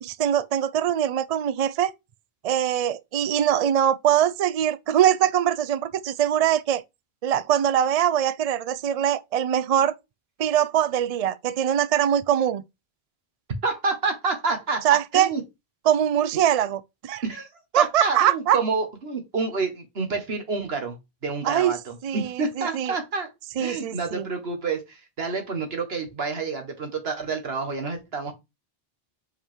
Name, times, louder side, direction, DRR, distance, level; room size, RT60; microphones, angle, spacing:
voice 1, 0.0-1.9 2.4-6.8 7.2-9.9 10.4-12.6 14.8-15.3 15.9-17.2 17.7-18.6 21.4-23.0 23.6-24.3, right 10 dB, 55° right, 0.4 m, -22 dB
voice 2, 13.6-14.8 15.1-15.4 17.2-17.5 17.8-21.0 21.2-23.3 23.6-28.3, right 4 dB, 75° right, 1.7 m, -28 dB
5.3 x 4.9 x 3.6 m
omnidirectional pair, 1.0 m